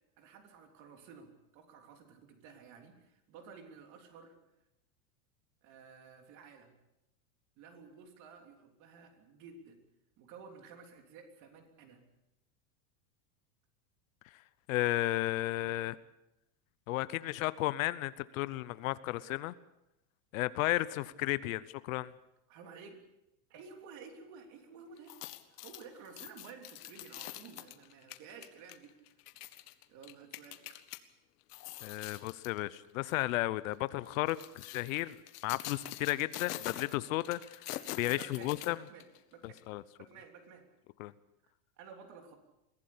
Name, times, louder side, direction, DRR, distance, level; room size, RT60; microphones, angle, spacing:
voice 1, 0.2-4.4 5.6-6.7 7.6-9.8 10.2-12.0 22.5-23.0 23.5-25.2 25.5-28.9 29.9-30.8 38.2-38.6 38.8-39.6 40.0-40.7 41.4-41.5 41.8-42.4, right 5 dB, 40° right, 5 dB, 3.4 m, -53 dB
voice 2, 14.7-16.0 16.9-19.5 20.3-22.1 31.8-35.1 35.4-37.4 37.9-38.8 39.7-39.8 41.0-41.1, left 17 dB, 60° left, 17 dB, 0.9 m, -33 dB
sound 1, 25.0-31.0 31.4-32.6 33.0-33.2 34.0-39.2 39.6-39.7, left 15 dB, 80° left, 1.7 m, -45 dB
23.0 x 16.0 x 8.6 m, 0.87 s
supercardioid pair, 170°, 46 cm